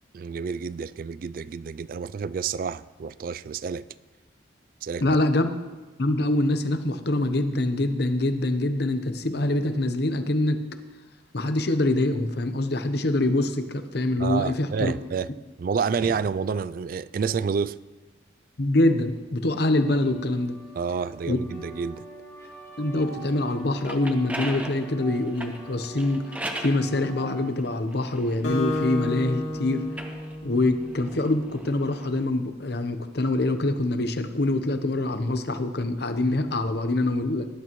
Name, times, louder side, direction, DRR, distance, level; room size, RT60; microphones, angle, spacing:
voice 1, 0.1-3.8 4.8-5.2 14.2-15.3 15.6-17.8 20.7-22.0, right 5 dB, 50° right, 0.3 m, -29 dB
voice 2, 5.0-5.5 6.0-10.6 11.3-14.9 18.6-20.6 21.3-21.4 22.8-26.3 26.6-29.8 30.4-37.5, left 2 dB, 60° left, 0.9 m, -25 dB
sound 1, 19.5-27.5, right 3 dB, 15° left, 1.8 m, -44 dB
sound 2, 23.6-26.8 27.6-29.3 29.8-32.1, right 1 dB, 10° right, 0.9 m, -38 dB
Acoustic guitar, 28.4-31.2, left 1 dB, 90° left, 2.7 m, -31 dB
18.0 x 11.0 x 3.1 m
head